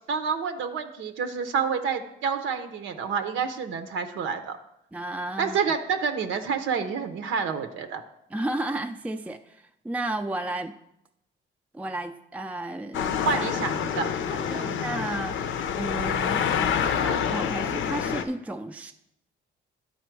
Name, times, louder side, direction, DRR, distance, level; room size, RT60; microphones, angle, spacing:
voice 1, 0.1-4.6 5.4-8.0 13.3-14.1 14.6-14.8, right 6 dB, 75° right, 8 dB, 0.8 m, -28 dB
voice 2, 4.9-5.6 8.3-10.7 11.7-13.4 14.3-16.4 17.0-18.9, right 1 dB, 5° right, 6 dB, 0.4 m, -33 dB
sound 1, 12.9-18.2, left 7 dB, 75° left, 0.6 m, -27 dB
11.0 x 4.2 x 4.6 m, 0.82 s
cardioid pair, 90°, 20 cm